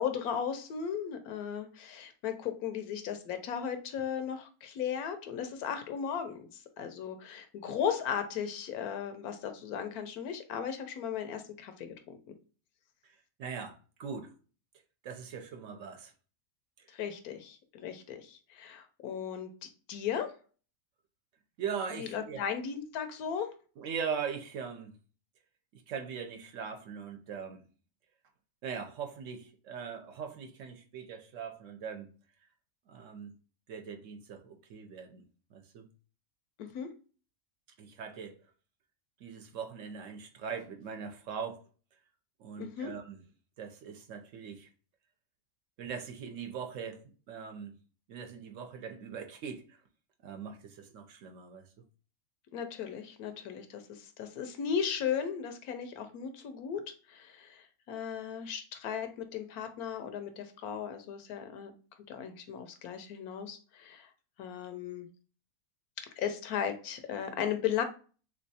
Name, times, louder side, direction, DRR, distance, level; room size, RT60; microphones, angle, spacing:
voice 1, 0.0-12.2 16.9-20.3 22.0-23.5 36.6-36.9 42.6-42.9 52.5-56.8 57.1-61.7 62.1-64.1 64.4-65.1 66.0-67.8, left 8 dB, 90° left, 1.1 m, -36 dB
voice 2, 13.0-14.3 15.0-16.1 16.8-16.9 21.6-22.4 23.8-25.0 25.7-27.6 28.6-32.1 32.9-33.3 33.7-35.2 35.5-35.9 37.8-38.4 39.2-41.6 42.4-43.2 43.6-44.7 45.8-47.8 48.1-49.8 50.2-51.7, right 6 dB, 65° right, 0.9 m, -41 dB
3.4 x 3.1 x 2.7 m
omnidirectional pair, 1.5 m